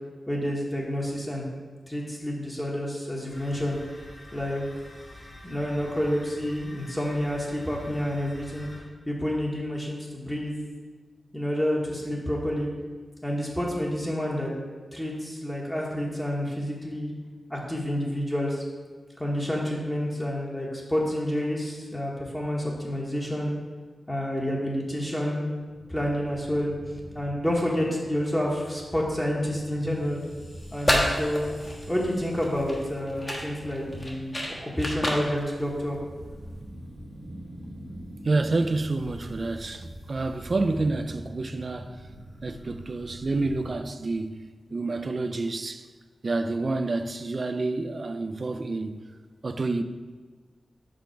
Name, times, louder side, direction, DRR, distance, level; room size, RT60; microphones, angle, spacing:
voice 1, 0.3-1.5 1.9-3.8 4.3-4.6 5.4-8.7 9.1-10.5 11.3-12.7 13.2-14.5 14.9-17.1 17.5-18.6 19.2-23.6 24.1-25.5 25.9-26.7 27.1-30.2 30.7-31.5 31.9-36.0, equal, 10° left, 1.2 m, -29 dB
sound 1, 3.3-8.8, left 1 dB, 50° left, 2.0 m, -47 dB
sound 2, 25.6-43.7, right 1 dB, 70° left, 1.9 m, -45 dB
sound 3, 30.6-36.6, left 1 dB, 25° left, 1.2 m, -31 dB
voice 2, 38.2-42.0 42.4-45.9 46.2-49.1 49.4-49.8, right 3 dB, 45° right, 0.4 m, -28 dB
5.2 x 5.1 x 4.5 m
wide cardioid pair, 85°, 0 cm